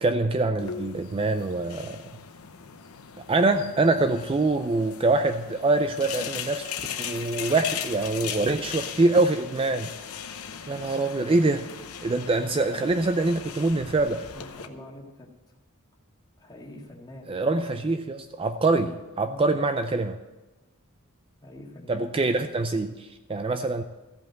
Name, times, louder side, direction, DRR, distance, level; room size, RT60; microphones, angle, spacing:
voice 1, 0.0-2.0 3.3-9.9 10.7-11.7 12.0-14.2 17.3-20.2 21.9-23.8, right 2 dB, 25° right, 8 dB, 0.4 m, -24 dB
sound 1, 0.6-14.7, left 8 dB, 85° left, 0.8 m, -38 dB
voice 2, 14.3-15.3 16.4-17.3 19.2-19.5 21.4-22.1, left 1 dB, 20° left, -1 dB, 1.8 m, -44 dB
14.5 x 5.3 x 7.6 m, 1.1 s
head